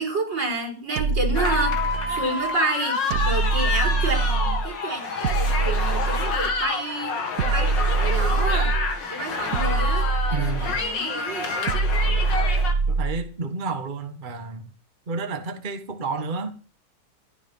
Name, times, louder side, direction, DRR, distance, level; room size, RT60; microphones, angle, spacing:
voice 1, 0.0-1.8 2.1-3.0 3.3-7.1 7.4-8.7 9.1-10.1 10.3-11.8, right 2 dB, 85° right, 5.4 m, -29 dB
sound 1, 1.0-2.3 3.1-4.7 5.2-6.7 7.4-9.0 9.5-10.9 11.7-13.3, right 4 dB, 60° right, 1.5 m, -24 dB
sound 2, 1.3-12.7, left 4 dB, 85° left, 2.9 m, -28 dB
voice 2, 10.3-10.8 12.9-14.7 15.1-16.5, right 4 dB, 30° right, 1.5 m, -30 dB
16.5 x 12.0 x 5.6 m
omnidirectional pair, 1.9 m